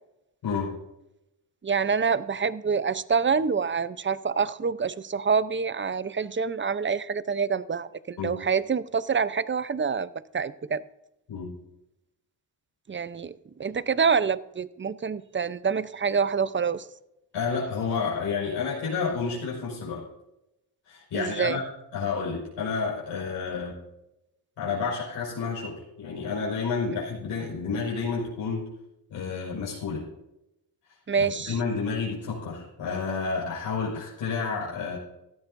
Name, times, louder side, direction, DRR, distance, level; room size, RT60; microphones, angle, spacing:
voice 1, 0.4-0.7 8.2-8.4 11.3-11.5 17.3-20.1 20.9-21.6 21.9-23.8 24.6-28.7 29.1-30.1 31.2-35.0, left 5 dB, 80° left, -6 dB, 5.4 m, -30 dB
voice 2, 1.6-10.8 12.9-16.8 21.1-21.6 31.1-31.6, right 6 dB, 25° right, 16 dB, 0.7 m, -26 dB
17.0 x 13.0 x 2.7 m, 0.88 s
supercardioid pair, 55°, 42 cm